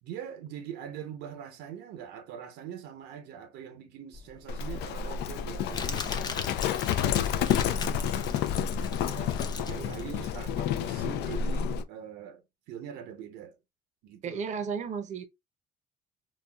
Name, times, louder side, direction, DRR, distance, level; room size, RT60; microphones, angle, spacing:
voice 1, 0.0-6.5 6.9-8.7 9.0-13.6 14.0-14.4, right 9 dB, 90° right, 0.7 m, -43 dB
Crumpling crinkling, 4.1-11.2, left 4 dB, 25° left, 0.5 m, -41 dB
Livestock farm animals working animals, 4.5-11.8, left 8 dB, 80° left, 0.4 m, -30 dB
voice 2, 14.2-15.2, right 6 dB, 45° right, 0.6 m, -34 dB
4.0 x 2.2 x 2.3 m
cardioid pair, 110°, 17 cm